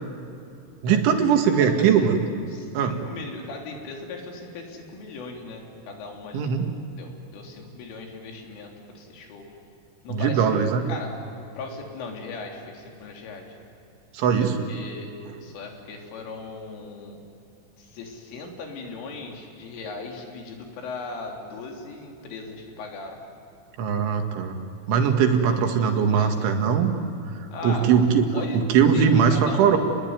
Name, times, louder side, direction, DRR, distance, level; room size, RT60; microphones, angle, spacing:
voice 1, 0.8-2.2 2.7-2.9 6.3-6.7 10.1-10.8 14.1-14.6 23.8-24.6 24.9-26.9 27.4-29.8, right 7 dB, 70° right, 4 dB, 4.3 m, -20 dB
voice 2, 1.6-2.1 2.5-6.5 7.0-9.5 10.0-11.1 11.6-13.6 14.7-15.1 15.4-17.2 17.8-23.2 25.4-26.5 27.5-27.9 28.3-28.6 28.9-29.8, left 3 dB, 70° left, 1 dB, 5.8 m, -38 dB
30.0 x 21.0 x 9.5 m, 2.5 s
omnidirectional pair, 6.0 m